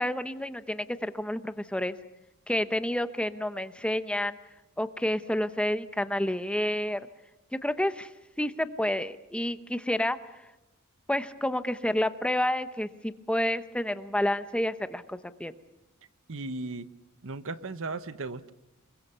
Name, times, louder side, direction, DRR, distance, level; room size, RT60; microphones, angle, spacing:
voice 1, 0.0-1.9 2.5-4.4 4.8-7.0 7.5-8.1 8.4-10.2 11.1-15.5, left 1 dB, 5° left, 11 dB, 0.8 m, -29 dB
voice 2, 16.3-16.9 17.2-18.5, right 3 dB, 65° right, 13 dB, 1.0 m, -36 dB
28.5 x 22.0 x 7.0 m, 0.98 s
head